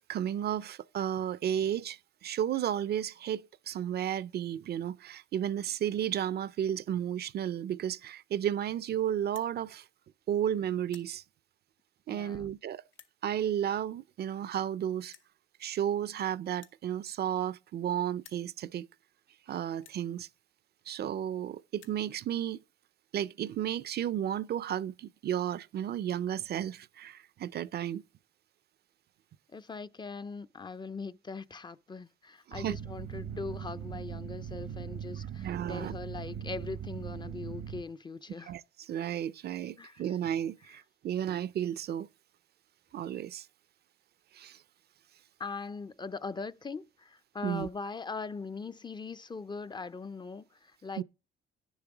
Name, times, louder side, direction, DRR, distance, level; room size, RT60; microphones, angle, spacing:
voice 1, 0.0-9.9 10.3-11.2 12.1-12.8 13.2-15.1 15.6-18.9 19.5-20.3 20.9-22.6 23.1-28.0 32.5-32.8 35.4-36.0 38.5-38.6 38.9-42.1 42.9-43.5 44.3-44.6 47.4-47.7 51.0-51.1, right 10 dB, 55° right, 0.4 m, -33 dB
sound 1, 9.3-9.5 10.2-10.4 10.7-11.1 11.9-12.0 12.9-13.2 14.2-14.3 14.5-14.6 15.1-15.3 16.5-17.8 18.1-18.5 19.2-19.3 19.8-20.0 20.9-21.0 21.3-21.4 21.6-22.0, left 9 dB, 85° left, 1.0 m, -56 dB
voice 2, 12.1-12.5 29.5-38.5 39.8-40.0 40.7-40.8 45.4-51.0, left 4 dB, 20° left, 0.4 m, -41 dB
sound 2, 32.5-37.8, right 8 dB, 80° right, 0.9 m, -40 dB
9.9 x 7.1 x 4.9 m
cardioid pair, 90°, 20 cm